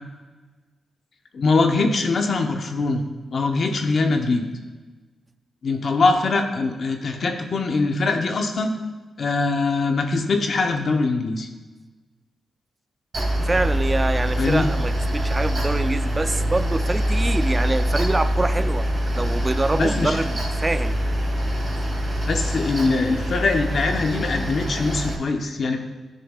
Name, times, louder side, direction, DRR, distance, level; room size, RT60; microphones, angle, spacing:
voice 1, 1.3-3.0 3.3-4.4 5.6-8.7 9.2-11.5 14.4-14.7 19.7-20.2 22.3-25.8, left 3 dB, 50° left, 4 dB, 0.9 m, -22 dB
Mechanical fan, 13.1-25.1, equal, 35° right, 1.9 m, -24 dB
voice 2, 13.5-21.0, right 2 dB, 20° right, 11 dB, 0.4 m, -25 dB
16.0 x 6.7 x 2.4 m, 1.3 s
wide cardioid pair, 145°, 0 cm